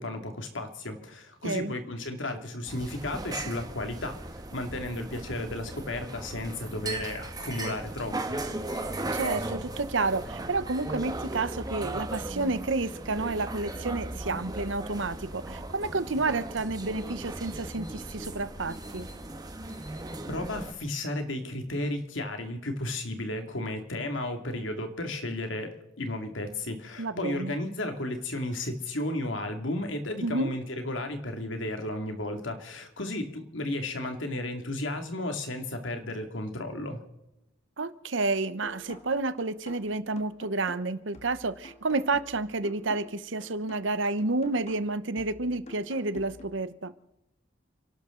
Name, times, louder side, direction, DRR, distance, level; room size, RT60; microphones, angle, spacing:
voice 1, 0.0-4.2 4.5-8.4 20.3-37.0, left 1 dB, 80° left, 5 dB, 2.5 m, -33 dB
voice 2, 1.4-1.7 9.1-19.1 27.0-27.5 30.2-30.5 37.8-46.9, right 3 dB, 75° right, 13 dB, 1.0 m, -30 dB
sound 1, 2.7-20.7, right 2 dB, 20° right, 1.4 m, -37 dB
sound 2, 38.6-46.6, left 2 dB, 35° left, 1.9 m, -48 dB
29.5 x 12.0 x 3.9 m, 0.89 s
head